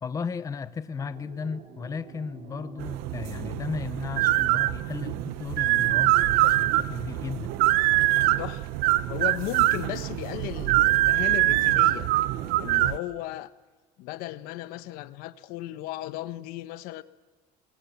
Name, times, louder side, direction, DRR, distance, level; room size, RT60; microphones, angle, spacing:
voice 1, 0.0-7.5, left 6 dB, 20° left, 13 dB, 0.8 m, -35 dB
sound 1, 0.9-12.9, right 6 dB, 50° right, 4.3 m, -47 dB
sound 2, 2.8-13.0, right 16 dB, 85° right, 0.9 m, -24 dB
voice 2, 9.1-12.1 12.6-13.5 14.0-17.0, left 15 dB, 80° left, 13 dB, 1.1 m, -35 dB
24.0 x 22.0 x 8.3 m, 1.3 s
cardioid pair, 150°, 15 cm